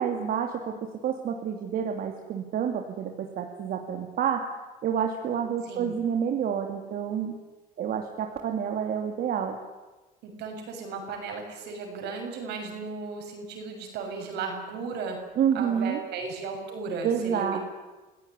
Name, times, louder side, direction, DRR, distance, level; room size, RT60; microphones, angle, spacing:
voice 1, 0.0-4.5 4.8-7.3 7.8-9.6 15.4-16.0 17.0-17.6, right 8 dB, 60° right, 3 dB, 2.7 m, -28 dB
voice 2, 10.2-15.2 15.5-17.6, right 4 dB, 85° right, 3 dB, 7.0 m, -35 dB
27.0 x 17.0 x 9.9 m, 1.2 s
cardioid pair, 110°, 17 cm